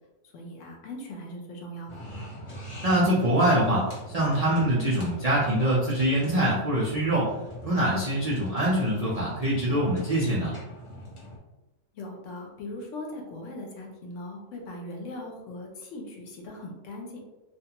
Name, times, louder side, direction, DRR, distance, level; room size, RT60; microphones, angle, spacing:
voice 1, 0.3-2.1 11.9-17.2, left 1 dB, 70° left, 1 dB, 0.9 m, -39 dB
sound 1, 1.9-11.4, equal, 30° left, 0.6 m, -42 dB
voice 2, 2.8-7.3 7.6-10.5, right 1 dB, 65° right, -6 dB, 0.3 m, -24 dB
2.4 x 2.3 x 2.8 m, 1.0 s
omnidirectional pair, 1.4 m